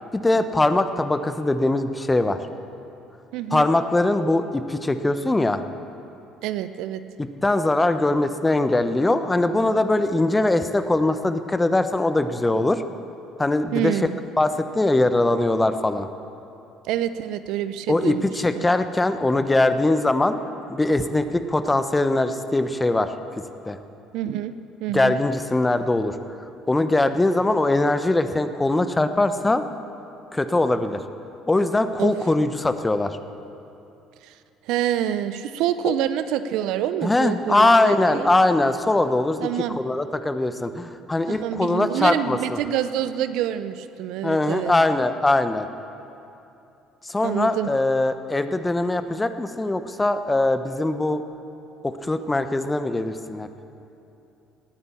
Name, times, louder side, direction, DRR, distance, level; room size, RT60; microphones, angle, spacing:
voice 1, 0.1-2.4 3.5-5.6 7.4-12.8 13.4-14.0 14.4-16.1 17.9-20.4 20.7-23.1 23.7-23.8 24.9-26.1 26.7-29.6 30.3-31.0 31.5-33.2 37.0-39.5 39.7-42.6 44.2-45.7 47.0-51.2 51.8-53.5, left 2 dB, 15° left, 10 dB, 1.0 m, -21 dB
voice 2, 3.3-3.7 6.4-7.0 13.7-14.2 16.9-18.7 24.1-24.5 24.8-25.2 32.0-32.1 34.2-34.3 34.6-38.3 39.4-39.8 41.3-44.7 47.2-47.7, right 11 dB, 65° right, 12 dB, 0.6 m, -27 dB
18.5 x 9.7 x 7.2 m, 2.8 s
hypercardioid pair, 55°, 0 cm